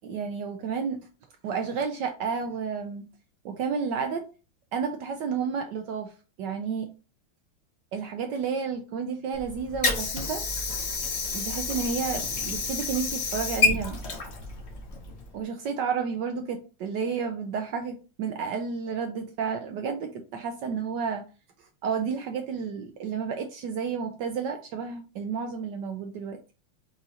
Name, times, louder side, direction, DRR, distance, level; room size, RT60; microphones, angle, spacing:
voice 1, 0.0-1.0 1.4-3.0 3.4-4.2 4.7-6.1 6.4-6.9 7.9-10.4 11.3-14.0 15.3-21.2 21.8-26.4, right 6 dB, 75° right, 6 dB, 1.0 m, -31 dB
Water / Sink (filling or washing), 9.3-15.3, left 3 dB, 80° left, 0.5 m, -29 dB
4.9 x 2.8 x 3.7 m, 0.34 s
omnidirectional pair, 2.4 m